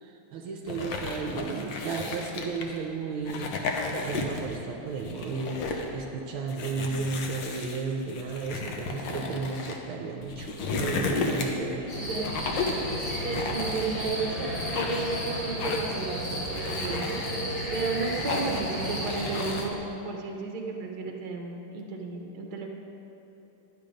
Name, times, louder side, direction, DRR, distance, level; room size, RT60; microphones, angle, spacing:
voice 1, 0.0-10.5 10.8-11.9, right 4 dB, 80° right, 1 dB, 1.6 m, -34 dB
sound 1, 0.7-2.8 3.2-4.6 4.9-5.9 6.5-9.8 10.2-11.7 12.2-12.9 13.3-14.2 14.6-15.2 15.6-16.0 16.4-17.3 17.8-18.7 19.1-19.7, left 3 dB, 65° left, 1.6 m, -33 dB
sound 2, 11.9-19.5, equal, 85° left, 3.5 m, -33 dB
voice 2, 11.9-12.3 13.2-17.4 17.7-19.8 20.0-22.7, right 4 dB, 55° right, 1 dB, 1.6 m, -33 dB
11.5 x 8.9 x 5.1 m, 3.0 s
omnidirectional pair, 2.3 m